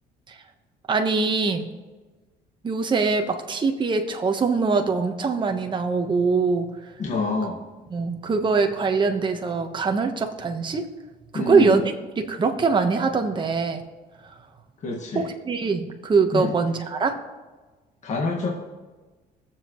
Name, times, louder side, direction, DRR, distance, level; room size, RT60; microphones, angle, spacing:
voice 1, 0.9-1.7 2.6-6.9 7.9-10.9 11.3-11.8 12.2-13.8 14.2-14.5 15.1-17.1, right 4 dB, 30° right, 4 dB, 1.2 m, -23 dB
voice 2, 7.0-7.6 11.3-11.7 14.8-15.3 16.3-16.5 18.0-18.5, left 3 dB, 45° left, -1 dB, 1.7 m, -27 dB
21.0 x 7.5 x 3.1 m, 1.2 s
cardioid pair, 110°, 17 cm